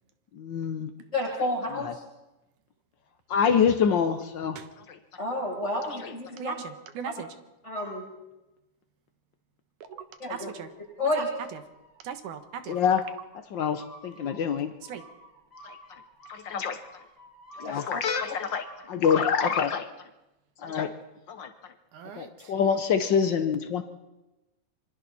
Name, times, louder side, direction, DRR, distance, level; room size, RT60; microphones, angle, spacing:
voice 1, 0.3-0.9 1.8-1.9 3.3-4.6 6.0-6.1 12.7-13.0 13.5-14.7 15.6-15.8 16.3-16.8 17.6-19.9 20.6-20.9 21.3-21.5 22.2-23.8, left 7 dB, 85° left, 9 dB, 1.0 m, -26 dB
voice 2, 1.1-2.0 5.2-6.5 7.6-8.0 10.2-10.5 11.0-11.3 17.6-17.8, left 2 dB, 20° left, -4 dB, 8.4 m, -30 dB
voice 3, 6.4-7.3 9.8-10.7 11.1-11.2 11.5-11.6 12.0-12.8 14.2-14.3 14.8-15.0 21.9-22.5, right 8 dB, 85° right, 9 dB, 2.9 m, -39 dB
sound 1, 10.3-11.1 11.5-12.0 12.7-19.0, equal, 5° left, 6.9 m, -51 dB
26.5 x 24.0 x 4.2 m, 0.99 s
omnidirectional pair, 3.5 m